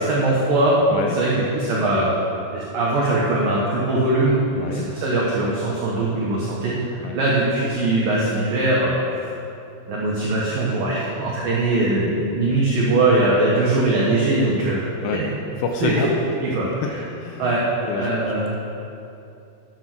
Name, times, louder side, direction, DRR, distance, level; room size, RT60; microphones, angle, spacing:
voice 1, 0.0-0.7 1.1-2.1 2.5-4.4 4.7-9.1 9.9-14.9 15.8-15.9 16.4-17.0 17.4-17.6 17.9-18.5, right 2 dB, 65° right, -5 dB, 2.4 m, -21 dB
voice 2, 4.6-4.9 7.0-7.2 15.0-15.2 15.6-16.1 16.8-18.6, left 5 dB, 85° left, 3 dB, 2.5 m, -28 dB
10.0 x 9.8 x 6.2 m, 2.7 s
omnidirectional pair, 5.6 m